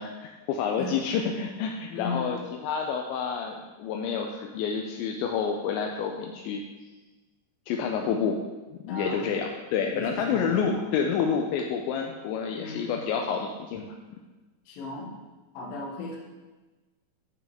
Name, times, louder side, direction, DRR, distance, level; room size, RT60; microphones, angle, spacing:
voice 1, 0.0-6.6 7.7-8.4 8.8-13.9, left 6 dB, 85° left, 2 dB, 2.8 m, -29 dB
voice 2, 1.9-2.5 8.9-9.3 9.9-10.5 10.7-10.8 12.6-13.0 14.7-15.1 15.5-16.2, left 3 dB, 65° left, -2 dB, 2.5 m, -36 dB
10.5 x 6.3 x 3.6 m, 1.2 s
omnidirectional pair, 5.4 m